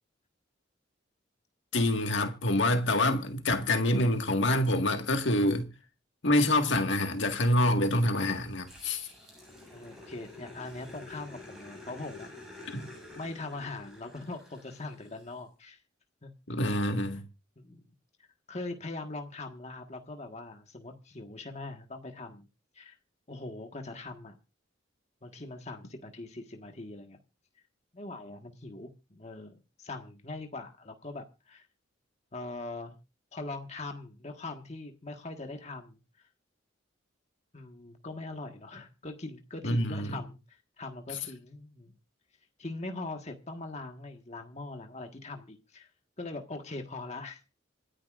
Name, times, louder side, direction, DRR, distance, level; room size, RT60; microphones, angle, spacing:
voice 1, 1.7-5.7 6.2-9.1 12.7-12.9 16.5-17.3 39.6-40.2, left 1 dB, 70° left, 1.8 m, -26 dB
Growling, 8.7-15.4, left 2 dB, 5° right, 7.7 m, -49 dB
voice 2, 9.7-12.3 13.2-15.8 16.2-16.3 17.6-17.8 18.2-22.5 22.7-23.0 23.3-24.4 25.2-27.2 27.9-31.7 32.3-32.9 33.3-36.0 37.5-41.9 42.6-45.9 46.2-47.4, left 2 dB, 35° left, 1.5 m, -41 dB
26.5 x 10.0 x 2.5 m
head